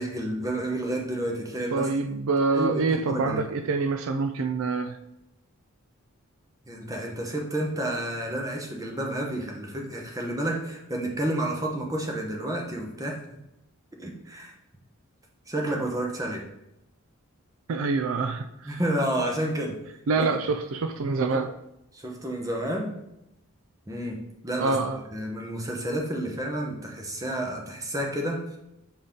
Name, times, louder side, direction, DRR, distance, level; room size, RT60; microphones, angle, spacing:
voice 1, 0.0-1.9 2.5-3.4 6.7-13.4 14.0-14.5 15.5-16.4 18.6-19.8 20.2-20.3 21.3-21.4 21.9-23.0 23.9-24.8 25.1-28.4, right 1 dB, 15° right, 1 dB, 0.9 m, -30 dB
voice 2, 1.7-5.0 17.7-18.7 20.1-21.5 24.6-25.0, right 4 dB, 65° right, 8 dB, 0.4 m, -26 dB
6.8 x 4.0 x 3.7 m, 0.85 s
head